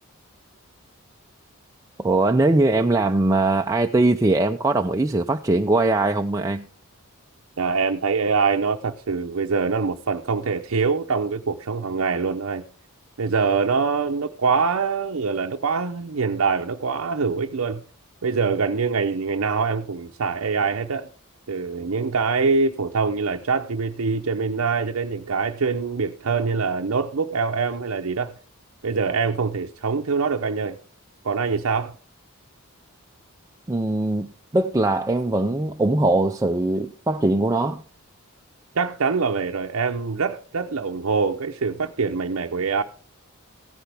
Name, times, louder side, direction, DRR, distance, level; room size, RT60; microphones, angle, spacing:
voice 1, 2.0-6.7 33.7-37.8, right 2 dB, 15° right, 0.4 m, -21 dB
voice 2, 7.6-12.6 13.2-17.8 18.2-21.1 21.5-28.3 28.8-30.8 31.2-31.9 38.7-42.8, right 5 dB, 70° right, 0.6 m, -24 dB
15.5 x 10.0 x 3.4 m
head